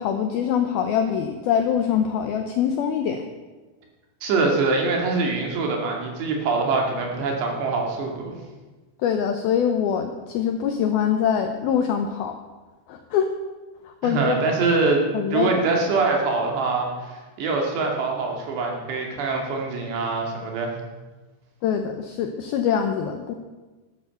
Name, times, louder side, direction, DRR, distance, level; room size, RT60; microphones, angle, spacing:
voice 1, 0.0-3.3 9.0-12.3 12.9-13.3 14.0-14.5 15.1-15.5 21.6-23.3, left 8 dB, 90° left, 5 dB, 2.1 m, -24 dB
voice 2, 4.2-8.3 14.0-20.7, right 3 dB, 65° right, 1 dB, 4.3 m, -24 dB
13.0 x 12.5 x 7.0 m, 1.2 s
omnidirectional pair, 5.6 m